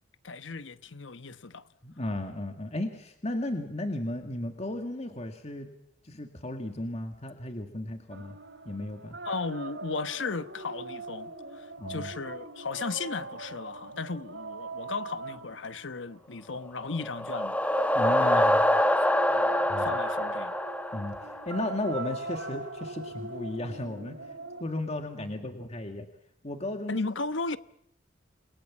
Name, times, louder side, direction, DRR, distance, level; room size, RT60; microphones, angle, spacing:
voice 1, 0.2-1.6 9.3-17.6 18.2-18.5 19.3-20.5 26.9-27.6, left 4 dB, 80° left, 1.1 m, -35 dB
voice 2, 1.8-5.7 6.0-8.3 8.7-9.2 11.8-12.1 17.9-18.6 19.7-19.9 20.9-24.2 24.6-26.1 26.4-27.0, left 1 dB, 35° left, 2.2 m, -34 dB
sound 1, 8.1-16.4 17.7-24.6, right 2 dB, 75° right, 2.9 m, -41 dB
sound 2, 16.8-21.7, left 1 dB, 10° left, 1.1 m, -25 dB
29.0 x 22.0 x 7.4 m
head